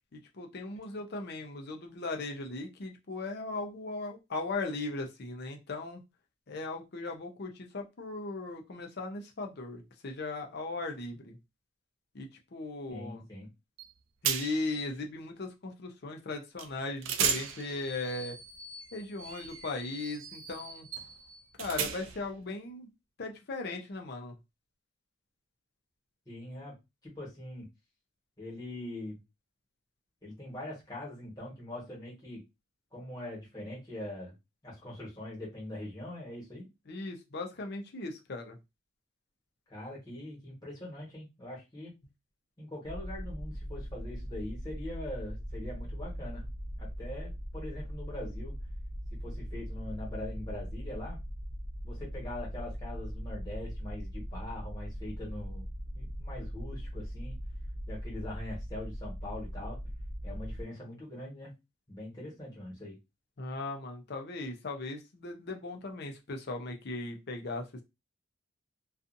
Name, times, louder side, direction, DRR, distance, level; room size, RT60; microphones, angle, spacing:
voice 1, 0.1-6.0 6.5-11.4 12.1-13.3 14.2-18.4 18.9-20.9 21.6-22.9 23.2-24.3 36.9-38.6 63.4-67.8, left 3 dB, 50° left, 3 dB, 0.5 m, -38 dB
voice 2, 12.9-13.5 26.3-26.7 27.0-27.7 28.4-29.2 30.2-32.4 32.9-34.3 34.6-36.7 39.7-41.9 42.6-46.5 46.8-48.6 49.2-51.2 51.8-55.7 55.9-57.4 57.9-59.8 60.2-61.5 61.9-63.0, left 1 dB, 20° left, -4 dB, 1.2 m, -42 dB
sound 1, 13.8-13.9 14.2-14.8 16.6-16.7 17.0-22.3, right 7 dB, 70° right, 0.4 m, -36 dB
sound 2, 42.8-60.6, equal, 75° left, 0.9 m, -40 dB
2.5 x 2.4 x 2.5 m, 0.23 s
head